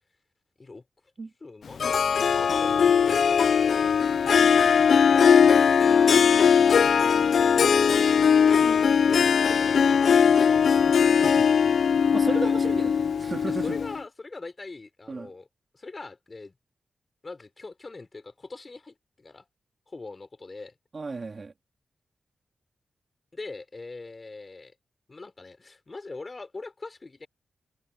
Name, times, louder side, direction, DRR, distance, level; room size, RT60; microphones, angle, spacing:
voice 1, 1.4-6.1 6.7-6.9 7.2-11.2 12.3-12.6 13.5-15.5 15.7-16.5 17.2-19.5 19.9-20.7 23.3-24.7 25.1-27.3, left 3 dB, 30° left, 4.3 m, -42 dB
Harp, 1.8-14.0, left 7 dB, 70° left, 0.3 m, -20 dB
voice 2, 12.1-13.8 15.1-15.3 20.9-21.5, right 4 dB, 35° right, 3.0 m, -34 dB
wide cardioid pair, 130°, 0 cm